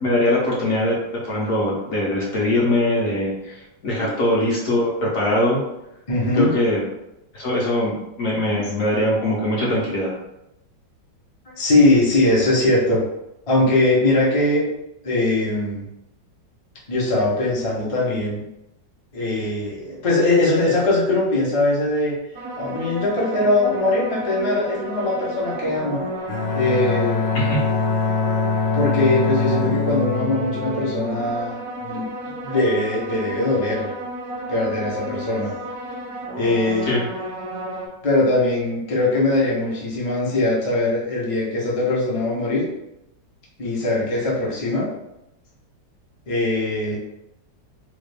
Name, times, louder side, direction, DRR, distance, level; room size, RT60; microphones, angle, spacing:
voice 1, 0.0-5.6 6.3-6.8 7.3-10.1 27.3-27.6 36.9-37.1, left 1 dB, 60° left, -4 dB, 1.0 m, -22 dB
voice 2, 6.1-6.5 11.5-13.0 13.5-14.7 15.0-15.9 16.9-18.4 19.1-22.1 22.6-26.0 26.5-27.2 28.7-33.9 34.5-35.5 36.4-36.9 38.0-42.7 43.6-44.9 46.3-47.0, left 2 dB, 45° left, -5 dB, 0.4 m, -21 dB
sound 1, 22.3-37.9, right 1 dB, 70° right, 0.8 m, -32 dB
Bowed string instrument, 26.3-31.3, left 5 dB, 85° left, 1.3 m, -23 dB
3.1 x 2.4 x 3.3 m, 0.87 s
omnidirectional pair, 1.9 m